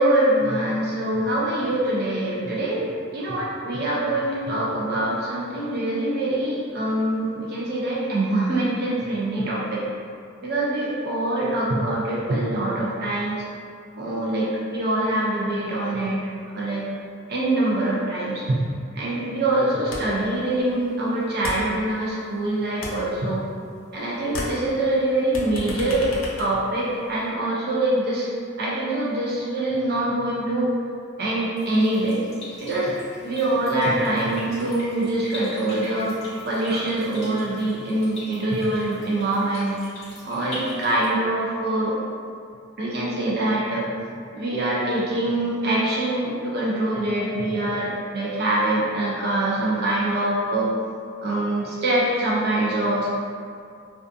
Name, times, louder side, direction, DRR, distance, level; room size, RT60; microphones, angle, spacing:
voice 1, 0.0-9.8 10.4-13.4 14.0-16.2 16.5-16.9 17.3-18.6 18.9-23.4 23.9-26.1 26.4-28.3 28.6-30.7 31.2-32.2 32.6-32.9 33.2-36.2 36.4-39.8 40.3-42.0 42.8-43.9 44.3-50.7 51.2-53.1, right 1 dB, 50° right, -6 dB, 0.4 m, -24 dB
sound 1, 19.9-20.3 20.6-22.4 22.6-24.0 24.2-27.3, left 1 dB, 85° left, 0.5 m, -35 dB
sound 2, 31.6-41.1, left 1 dB, 30° left, 0.7 m, -41 dB
2.4 x 2.2 x 2.5 m, 2.3 s
head